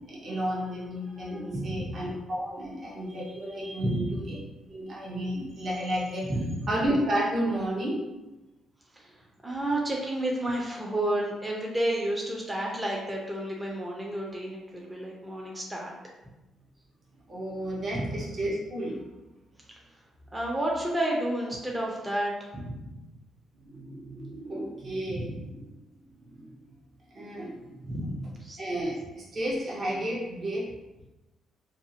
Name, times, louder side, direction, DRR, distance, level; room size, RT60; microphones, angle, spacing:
voice 1, 0.1-4.4 4.7-6.3 6.7-8.0 17.3-19.0 23.6-25.4 26.3-26.5 27.1-28.1 28.6-30.7, right 1 dB, 45° right, -5 dB, 0.9 m, -32 dB
voice 2, 1.5-1.9 3.8-4.2 6.2-6.7 8.9-9.1 9.4-15.9 20.3-22.8 25.1-25.4 27.9-28.6, right 1 dB, 15° right, -2 dB, 0.5 m, -31 dB
2.6 x 2.4 x 2.7 m, 1.0 s
cardioid pair, 90°, 0 cm